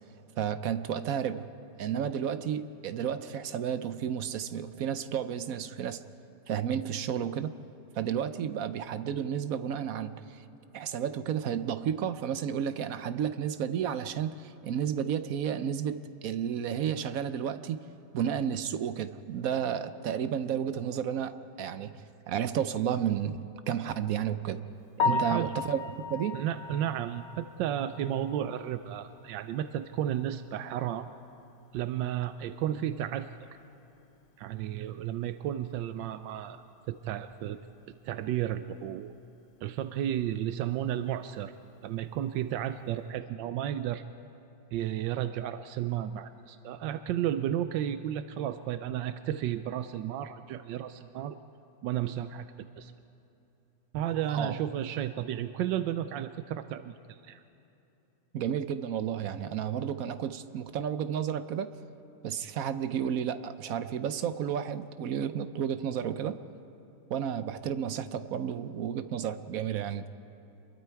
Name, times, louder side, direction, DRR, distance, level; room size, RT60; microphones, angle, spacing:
voice 1, 0.4-1.5 1.8-6.0 6.5-7.5 7.9-10.4 10.7-17.8 18.1-21.9 22.3-24.6 25.0-25.8 26.1-26.4 54.3-54.5 58.3-61.7 62.2-66.4 67.1-70.0, right 9 dB, 65° right, 11 dB, 1.0 m, -32 dB
Piano, 25.0-29.0 29.3-29.4 29.9-30.0 30.4-30.5 33.6-33.7 42.1-42.4, left 5 dB, 85° left, 1.8 m, -34 dB
voice 2, 25.0-25.5 26.3-31.1 31.7-33.3 34.4-37.6 37.9-39.1 39.6-41.5 41.8-44.0 44.7-51.4 51.8-52.5 52.8-52.9 53.9-57.4, right 11 dB, 90° right, 10 dB, 1.3 m, -33 dB
27.0 x 22.0 x 4.6 m, 2.9 s
omnidirectional pair, 1.9 m